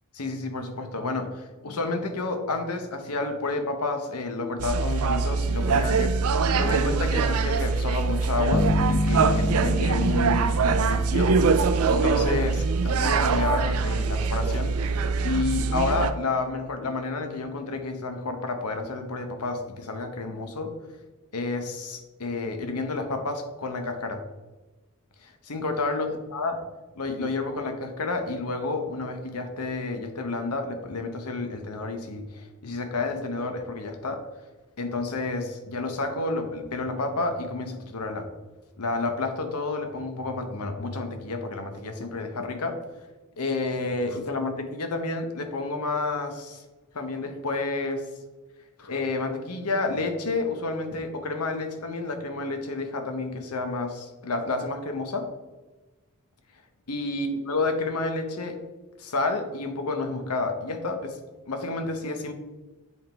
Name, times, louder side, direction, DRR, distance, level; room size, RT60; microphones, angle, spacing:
voice 1, 0.2-11.4 11.9-14.8 15.2-20.7 21.3-24.2 25.2-26.6 27.0-34.2 34.8-38.3 38.8-42.8 43.4-46.6 46.9-48.0 48.8-55.3 56.9-58.6 59.0-61.2 61.5-62.3, left 3 dB, 90° left, 6 dB, 1.0 m, -30 dB
sound 1, 4.6-16.1, right 4 dB, 75° right, 0.5 m, -23 dB
sound 2, 8.5-11.9, left 2 dB, 20° left, 0.4 m, -29 dB
8.4 x 3.6 x 4.4 m, 1.2 s
head